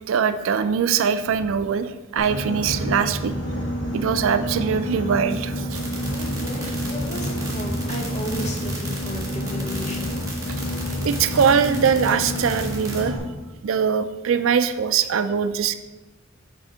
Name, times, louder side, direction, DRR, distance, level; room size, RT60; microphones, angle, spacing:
voice 1, 0.1-3.3 3.9-5.8 11.0-13.2 13.6-15.7, right 7 dB, 70° right, 11 dB, 0.4 m, -22 dB
Boat Water vehicle, 2.2-13.2, equal, 60° left, 2.0 m, -28 dB
sound 1, 5.7-13.0, right 3 dB, 15° right, 1.7 m, -36 dB
voice 2, 6.1-10.1, equal, 35° left, 1 dB, 1.1 m, -34 dB
7.7 x 3.6 x 4.9 m, 1.1 s
head